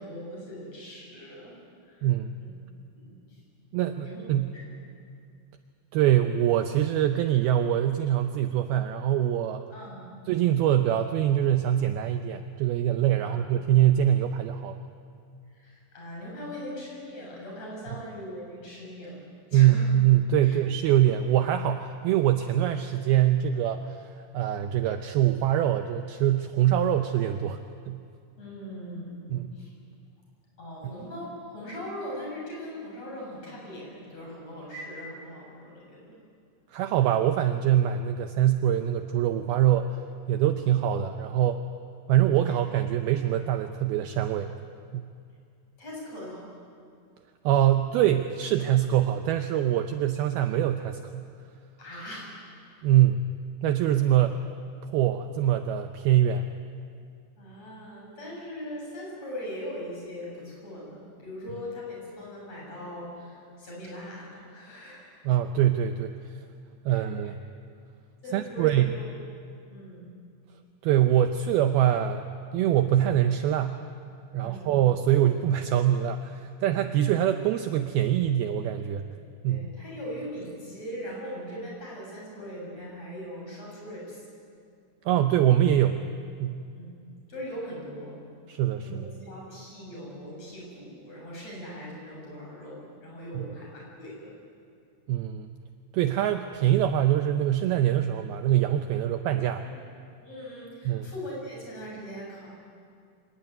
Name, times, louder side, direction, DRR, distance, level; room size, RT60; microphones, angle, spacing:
voice 1, 0.0-1.6 1.8-2.1 2.9-3.4 4.0-4.2 9.7-10.1 13.2-13.4 15.5-19.2 19.5-19.9 20.4-20.6 28.4-29.7 30.6-36.2 45.8-46.5 51.8-52.3 57.4-65.2 66.9-67.1 68.2-69.0 69.7-70.0 74.4-74.8 79.5-84.3 86.7-86.9 87.3-88.2 88.8-94.3 100.2-102.5, equal, 35° left, -3 dB, 8.2 m, -40 dB
voice 2, 2.0-2.3 3.7-4.5 5.9-9.6 10.3-14.8 19.5-27.6 27.9-28.0 29.3-29.5 36.7-40.0 40.3-41.6 42.1-44.5 44.9-45.1 47.4-51.3 52.8-53.2 53.6-54.4 54.8-56.5 65.2-66.1 66.9-67.4 68.3-68.9 70.8-73.8 74.3-79.1 79.4-79.7 85.1-86.0 86.4-86.6 88.5-89.0 93.3-93.5 95.1-95.5 95.9-99.6 100.9-101.1, right 11 dB, 85° right, 7 dB, 2.2 m, -24 dB
25.5 x 18.5 x 9.6 m, 2.3 s
omnidirectional pair, 5.3 m